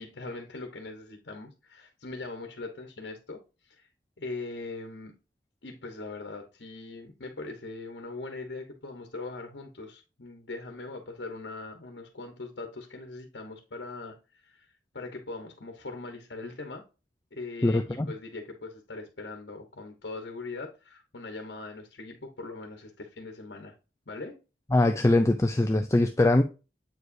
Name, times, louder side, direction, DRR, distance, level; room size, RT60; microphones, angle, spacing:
voice 1, 0.0-3.4 3.7-3.9 4.2-5.1 5.6-14.1 14.4-16.8 17.3-23.7 24.1-24.3, left 3 dB, 75° left, 1.1 m, -41 dB
voice 2, 17.6-18.1 24.7-26.4, left 2 dB, 15° left, 0.4 m, -22 dB
7.8 x 4.8 x 2.7 m
head